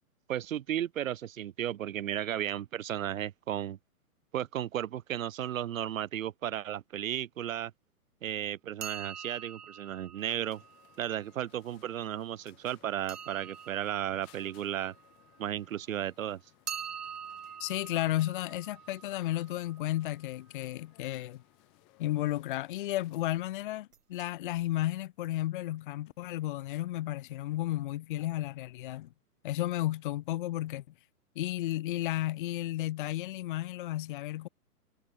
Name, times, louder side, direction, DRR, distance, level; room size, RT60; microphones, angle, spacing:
voice 1, 0.3-3.8 4.3-7.7 8.2-10.6 11.0-14.9 15.4-16.4, right 11 dB, 60° right, 1.7 m, -34 dB
sound 1, 8.8-11.5 13.1-15.8 16.7-20.5 23.9-24.3 24.6-24.7 25.4-25.5 25.7-25.8, right 8 dB, 75° right, 5.0 m, -45 dB
sound 2, 10.2-23.5, left 27 dB, ahead, 0.4 m, -64 dB
voice 2, 17.6-21.4 22.0-29.1 29.4-30.8 31.4-34.5, left 15 dB, 35° left, 0.8 m, -33 dB
hypercardioid pair, 145°, 46 cm